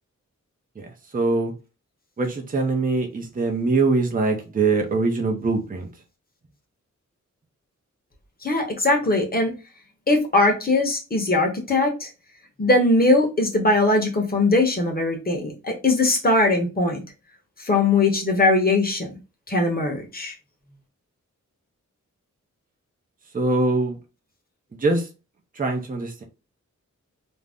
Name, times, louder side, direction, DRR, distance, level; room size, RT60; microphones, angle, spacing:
voice 1, 0.8-1.5 2.2-5.9 23.3-24.0 24.8-25.1 25.6-26.2, right 3 dB, 30° right, 0.6 m, -23 dB
voice 2, 8.4-9.5 10.1-12.1 12.6-17.0 17.6-19.1 19.5-20.3, left 2 dB, 30° left, 0.9 m, -20 dB
2.6 x 2.1 x 3.3 m
wide cardioid pair, 105°, 31 cm